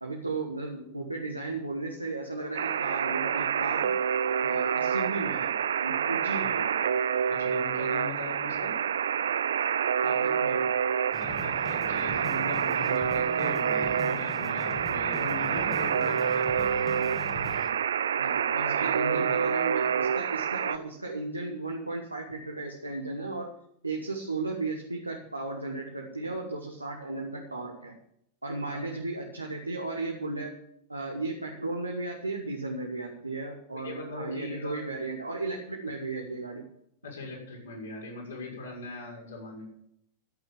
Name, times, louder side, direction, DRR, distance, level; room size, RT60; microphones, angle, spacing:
voice 1, 0.0-4.0 4.4-6.8 10.0-10.7 18.2-23.5 23.8-28.0 28.4-30.5 30.9-36.7, right 3 dB, 85° right, 1 dB, 1.8 m, -35 dB
Alarm, 2.5-20.8, right 8 dB, 65° right, 0.4 m, -27 dB
voice 2, 7.3-8.8 11.2-16.7 18.7-19.4 28.7-28.9 33.7-34.8 37.0-39.6, left 3 dB, 65° left, -2 dB, 6.4 m, -40 dB
sound 1, 11.1-17.7, left 2 dB, 20° left, 2.4 m, -42 dB
13.0 x 8.4 x 7.4 m, 0.72 s
figure-of-eight pair, 90°, 0 cm